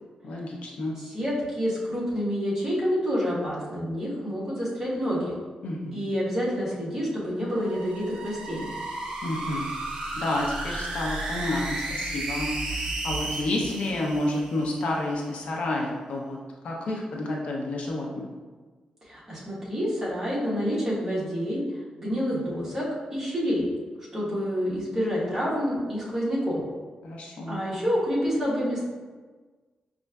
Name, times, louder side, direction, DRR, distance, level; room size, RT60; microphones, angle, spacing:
voice 1, 0.2-1.0 5.6-6.0 9.2-9.7 10.2-16.4 16.6-18.3 27.0-27.7, left 1 dB, 65° left, -1 dB, 0.5 m, -30 dB
voice 2, 0.9-5.3 5.9-8.7 19.0-21.6 22.0-22.8 23.1-23.7 24.1-26.6 27.5-28.8, equal, 20° right, -8 dB, 1.1 m, -28 dB
sound 1, 7.4-14.9, right 2 dB, 65° right, 0.7 m, -33 dB
5.1 x 2.5 x 2.2 m, 1.4 s
wide cardioid pair, 170°, 2 cm